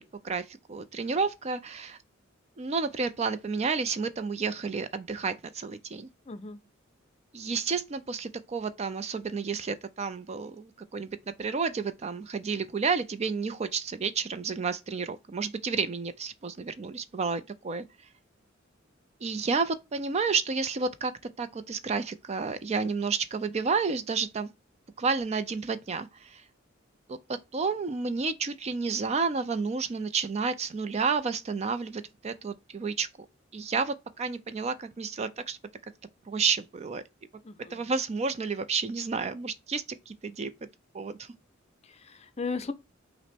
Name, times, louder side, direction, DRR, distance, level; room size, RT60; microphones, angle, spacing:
voice 1, 0.0-2.0 2.6-6.1 7.3-17.8 19.2-24.5 25.0-26.4 27.1-33.1 33.5-35.6 36.3-37.0 37.7-40.5 40.9-41.3, right 5 dB, 35° right, 0.4 m, -31 dB
voice 2, 6.3-6.6 37.4-37.8 41.8-42.7, left 4 dB, 35° left, 0.6 m, -36 dB
5.9 x 2.1 x 4.3 m
head